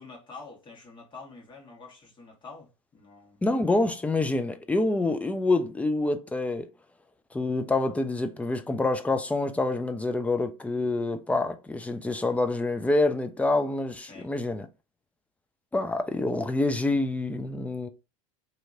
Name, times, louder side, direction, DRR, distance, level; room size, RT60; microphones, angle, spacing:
voice 1, 0.0-3.4 14.0-14.3, left 4 dB, 25° left, 1.5 m, -47 dB
voice 2, 3.4-6.7 7.3-14.7 15.7-17.9, left 2 dB, 10° left, 0.4 m, -27 dB
2.8 x 2.7 x 2.5 m
hypercardioid pair, 90°, 18 cm